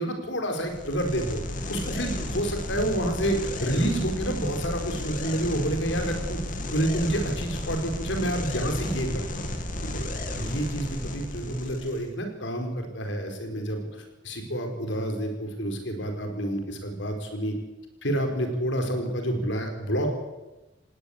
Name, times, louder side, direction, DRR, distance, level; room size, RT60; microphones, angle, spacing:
voice 1, 0.0-1.4 1.7-6.4 6.7-9.4 9.9-10.0 10.3-17.5 18.0-20.2, right 1 dB, 70° left, 5 dB, 4.5 m, -29 dB
sound 1, 0.6-12.1, left 1 dB, 45° left, 2.7 m, -33 dB
18.5 x 18.0 x 8.5 m, 1.1 s
head